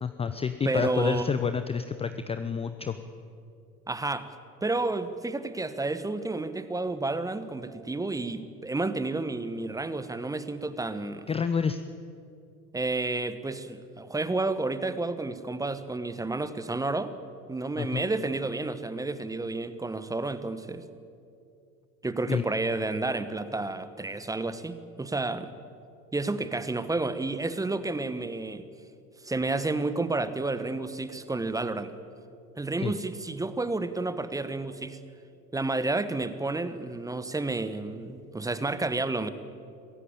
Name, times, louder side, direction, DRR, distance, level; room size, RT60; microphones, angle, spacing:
voice 1, 0.0-3.0 11.3-11.8 17.8-18.0 22.3-22.4 32.8-32.9, left 6 dB, 15° left, 10 dB, 0.7 m, -29 dB
voice 2, 0.6-1.3 3.9-4.3 4.6-11.3 12.7-17.1 17.5-20.8 22.0-25.5 26.1-28.7 29.2-31.9 32.6-35.0 35.5-39.3, right 2 dB, 5° right, 12 dB, 1.1 m, -30 dB
25.0 x 16.0 x 8.7 m, 2.5 s
figure-of-eight pair, 85°, 46 cm